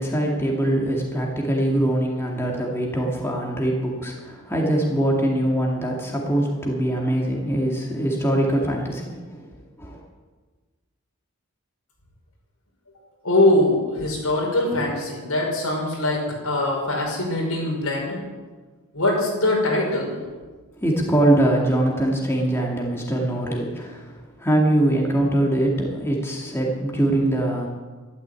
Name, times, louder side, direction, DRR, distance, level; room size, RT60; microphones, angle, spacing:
voice 1, 0.0-9.5 9.8-10.0 20.7-27.7, right 1 dB, 10° left, -1 dB, 2.2 m, -23 dB
voice 2, 13.2-18.2 18.9-20.2, left 1 dB, 80° left, -1 dB, 5.7 m, -22 dB
13.0 x 12.5 x 8.3 m, 1.4 s
head